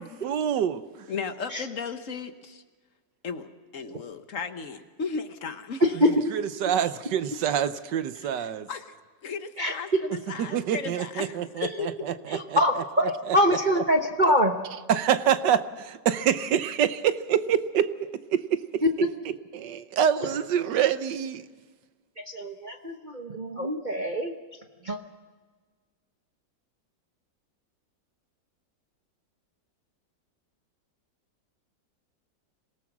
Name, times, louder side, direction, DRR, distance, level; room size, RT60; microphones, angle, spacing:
voice 1, 0.0-1.0 6.3-8.7 10.4-12.6 13.3-13.4 14.9-18.6 19.5-21.4, right 9 dB, 70° right, 12 dB, 1.4 m, -26 dB
voice 2, 1.1-2.6 3.2-5.8 8.1-8.3 8.7-9.0 9.2-12.2, left 5 dB, 50° left, 9 dB, 1.3 m, -35 dB
voice 3, 12.3-14.5 18.8-18.9 22.3-24.3 24.8-25.0, left 1 dB, 35° right, 3 dB, 0.9 m, -24 dB
26.0 x 18.5 x 6.0 m, 1.4 s
omnidirectional pair, 2.0 m